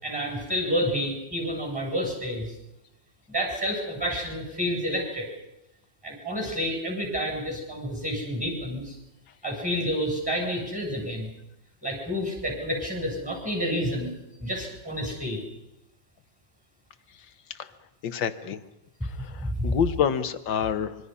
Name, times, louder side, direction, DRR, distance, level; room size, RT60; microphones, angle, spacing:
voice 1, 0.0-2.5 3.3-5.3 6.0-8.9 9.4-11.3 11.8-14.1 14.4-15.4 19.4-19.8, equal, 5° right, 1 dB, 7.8 m, -29 dB
voice 2, 18.0-18.6 19.0-21.0, left 8 dB, 75° left, 10 dB, 1.9 m, -28 dB
25.5 x 24.0 x 5.6 m, 0.88 s
omnidirectional pair, 2.1 m